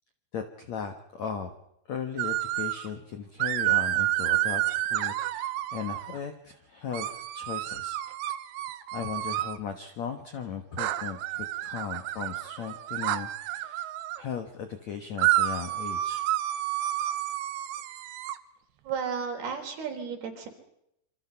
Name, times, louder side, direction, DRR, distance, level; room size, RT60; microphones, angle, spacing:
voice 1, 0.3-1.5 1.9-8.0 8.9-13.9 14.2-16.2, left 7 dB, 65° left, 7 dB, 1.8 m, -37 dB
sound 1, 2.2-2.9 3.4-6.2 6.9-9.6 10.8-14.2 15.2-18.4, right 14 dB, 75° right, 3.1 m, -30 dB
voice 2, 18.8-20.5, right 6 dB, 60° right, 3 dB, 5.6 m, -33 dB
27.5 x 26.0 x 5.8 m, 0.78 s
omnidirectional pair, 5.1 m